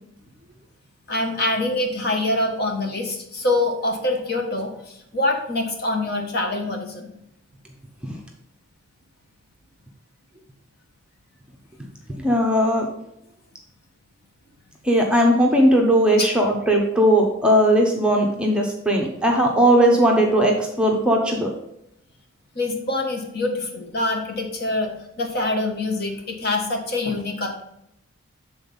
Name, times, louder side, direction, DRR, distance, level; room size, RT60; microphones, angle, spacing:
voice 1, 1.1-7.1 16.2-16.3 22.5-24.9 25.2-27.6, left 2 dB, 50° left, 2 dB, 1.3 m, -25 dB
voice 2, 12.2-12.9 14.8-21.5, equal, 5° right, 0 dB, 0.9 m, -18 dB
7.7 x 4.0 x 5.4 m, 0.79 s
head